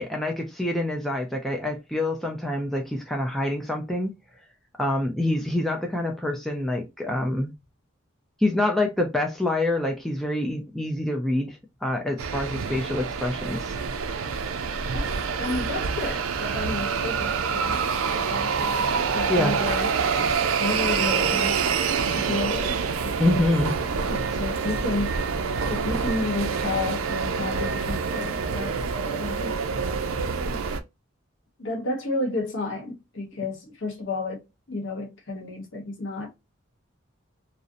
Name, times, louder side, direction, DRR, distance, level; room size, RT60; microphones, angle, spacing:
voice 1, 0.0-4.1 4.8-7.5 8.4-13.7 19.3-19.6 23.2-23.7, left 1 dB, ahead, 0.4 m, -26 dB
sound 1, 12.2-30.8, right 5 dB, 85° right, 0.4 m, -26 dB
voice 2, 14.9-17.8 18.1-19.9 20.6-21.6 22.1-23.4 23.8-25.2 25.7-28.8 29.0-29.6 30.3-30.7 31.6-36.3, left 2 dB, 65° left, 0.9 m, -32 dB
2.5 x 2.0 x 2.5 m
head